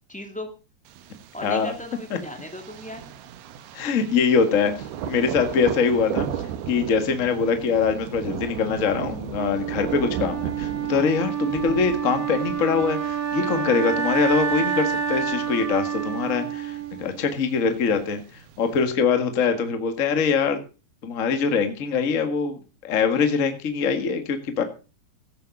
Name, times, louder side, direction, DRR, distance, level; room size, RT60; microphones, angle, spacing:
voice 1, 0.1-0.5 1.3-3.0, left 1 dB, 5° left, 3 dB, 0.9 m, -36 dB
Thunder, 0.9-18.8, right 10 dB, 80° right, 3.0 m, -36 dB
voice 2, 1.4-1.7 3.7-4.7 5.0-6.3 6.7-18.2 18.6-20.6 21.0-24.6, left 5 dB, 45° left, 7 dB, 1.0 m, -23 dB
Wind instrument woodwind instrument, 9.3-17.4, right 7 dB, 55° right, 1.9 m, -28 dB
16.5 x 7.4 x 5.4 m, 0.34 s
omnidirectional pair, 4.4 m